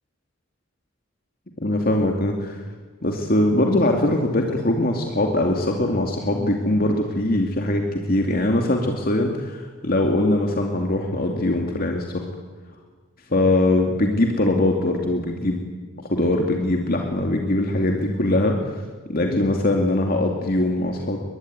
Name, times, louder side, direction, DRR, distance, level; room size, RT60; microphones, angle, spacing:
voice 1, 1.6-2.6 3.0-12.3 13.3-15.6 16.0-18.7 19.1-21.2, left 1 dB, 50° left, 2 dB, 2.6 m, -22 dB
24.0 x 20.5 x 9.6 m, 1.5 s
head